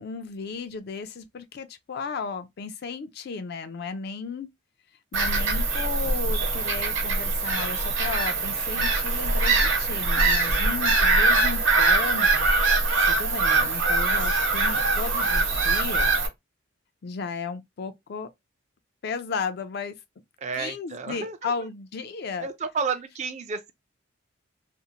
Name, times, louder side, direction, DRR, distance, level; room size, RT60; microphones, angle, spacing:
voice 1, 0.0-4.5 5.1-12.5 13.1-16.1 17.0-18.3 19.0-20.0 20.6-22.5, left 5 dB, 50° left, 0.4 m, -34 dB
Bird vocalization bird call bird song / Gull seagull, 5.1-16.3, right 3 dB, 65° right, 0.9 m, -23 dB
voice 2, 10.5-11.0 20.4-21.5 22.4-23.7, right 5 dB, 35° right, 0.3 m, -32 dB
2.5 x 2.0 x 2.7 m
head